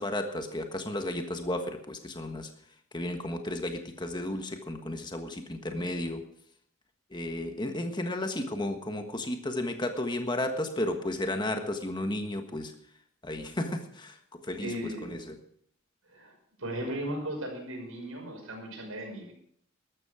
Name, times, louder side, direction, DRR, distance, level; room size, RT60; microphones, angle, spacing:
voice 1, 0.0-2.5 2.9-6.2 7.1-12.7 13.2-15.4, left 1 dB, 20° left, 6 dB, 1.5 m, -33 dB
voice 2, 14.6-15.1 16.1-16.3 16.6-19.3, right 1 dB, 85° right, 2 dB, 5.7 m, -36 dB
13.0 x 13.0 x 5.0 m, 0.64 s
head